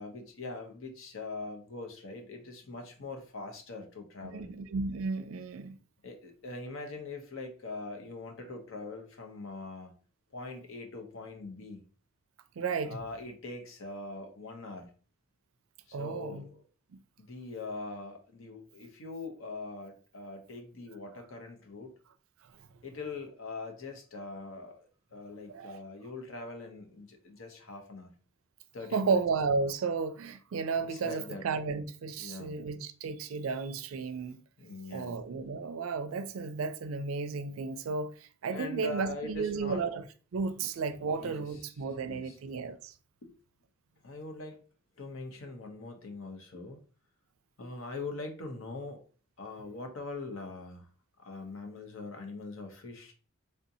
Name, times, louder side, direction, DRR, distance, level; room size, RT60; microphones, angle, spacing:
voice 1, 0.0-4.5 6.0-9.9 10.3-11.9 12.8-14.9 15.9-16.6 17.2-21.9 22.8-24.9 25.1-28.1 28.7-29.2 30.9-31.5 32.2-32.6 34.6-35.2 38.5-39.8 40.6-40.7 41.0-42.4 43.2-43.3 44.0-44.6 45.0-46.8 47.6-49.0 49.4-50.9 51.2-53.1, left 3 dB, 70° left, 0.7 m, -42 dB
voice 2, 4.3-5.8 12.6-13.0 15.9-16.5 25.5-25.8 28.9-34.4 34.9-38.1 38.4-40.0 40.3-42.9, right 4 dB, 75° right, 0.4 m, -33 dB
3.5 x 2.6 x 2.7 m
head